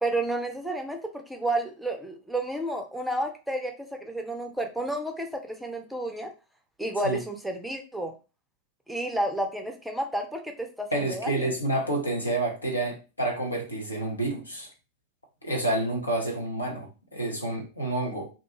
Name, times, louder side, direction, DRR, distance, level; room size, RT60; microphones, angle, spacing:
voice 1, 0.0-6.3 6.8-8.1 8.9-11.5, right 1 dB, ahead, 0.5 m, -31 dB
voice 2, 10.9-14.7 15.4-18.3, right 2 dB, 80° left, 0.8 m, -29 dB
2.4 x 2.3 x 2.9 m
figure-of-eight pair, 90°, 0 cm